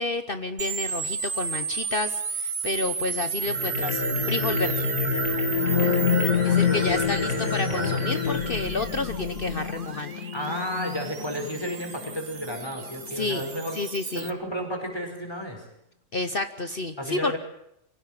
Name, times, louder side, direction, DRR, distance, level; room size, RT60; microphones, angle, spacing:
voice 1, 0.0-4.8 6.4-10.1 13.1-13.4 13.7-14.3 16.1-17.4, left 3 dB, 45° left, 10 dB, 1.1 m, -30 dB
sound 1, 0.6-14.3, right 6 dB, 40° right, 1.1 m, -33 dB
sound 2, 3.4-9.6, left 4 dB, 85° left, 5.1 m, -29 dB
sound 3, 5.5-13.3, left 8 dB, 60° left, 1.8 m, -29 dB
voice 2, 6.3-7.4 7.7-8.0 10.3-13.8 14.1-15.7 17.0-17.4, equal, 15° left, 3 dB, 5.0 m, -33 dB
24.0 x 17.0 x 8.9 m, 0.77 s
omnidirectional pair, 1.6 m